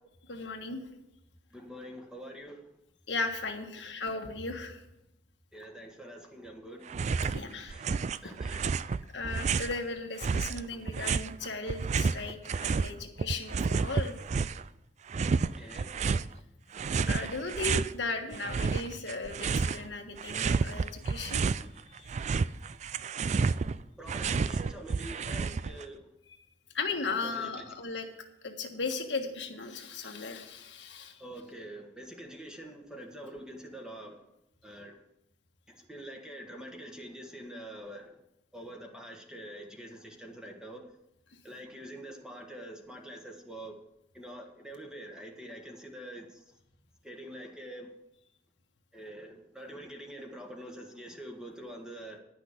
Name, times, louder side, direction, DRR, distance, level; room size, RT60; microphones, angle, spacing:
voice 1, 0.3-0.8 3.1-4.8 7.2-7.8 8.2-8.3 9.1-14.2 17.0-21.4 21.9-22.4 26.7-28.1 28.4-31.2, left 3 dB, 90° left, 3 dB, 1.5 m, -36 dB
voice 2, 1.5-2.6 5.5-6.9 7.6-7.8 8.2-8.9 15.5-16.0 24.0-26.0 27.2-27.6 31.2-34.2 34.6-35.0 35.7-38.2 38.5-40.8 41.4-43.8 44.1-46.4 47.0-47.9 48.9-52.2, right 1 dB, 5° right, 2 dB, 1.5 m, -45 dB
sound 1, 6.9-7.4 7.7-9.8 10.2-12.9 13.2-14.7 15.1-16.3 16.7-17.9 18.3-19.9 20.2-21.7 22.0-25.8, right 5 dB, 40° right, 0.3 m, -30 dB
11.0 x 6.1 x 8.3 m, 0.87 s
head